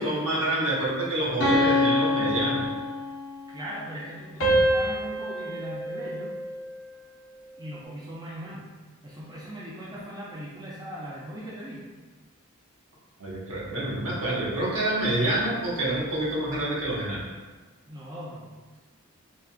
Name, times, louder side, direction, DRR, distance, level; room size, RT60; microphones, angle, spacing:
voice 1, 0.0-2.7 13.2-17.3, right 1 dB, 70° right, -7 dB, 1.0 m, -27 dB
sound 1, 1.4-3.4 4.4-6.8, left 1 dB, 85° left, 0.8 m, -25 dB
voice 2, 3.5-6.3 7.6-8.7 9.0-11.9 17.9-18.8, equal, 20° right, -7 dB, 0.4 m, -39 dB
3.6 x 2.2 x 2.4 m, 1.3 s
head